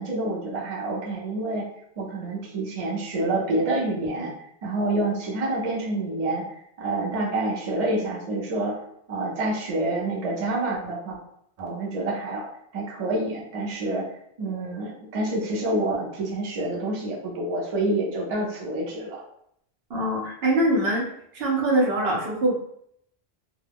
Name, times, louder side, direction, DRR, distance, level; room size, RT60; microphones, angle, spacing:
voice 1, 0.0-1.7 2.0-4.3 4.6-6.4 6.8-8.8 9.1-11.2 11.6-12.5 12.7-14.0 14.4-19.2, right 2 dB, 45° right, -3 dB, 0.7 m, -27 dB
voice 2, 19.9-21.1 21.3-22.5, right 1 dB, 75° right, -2 dB, 0.9 m, -23 dB
2.3 x 2.1 x 3.4 m, 0.70 s
omnidirectional pair, 1.1 m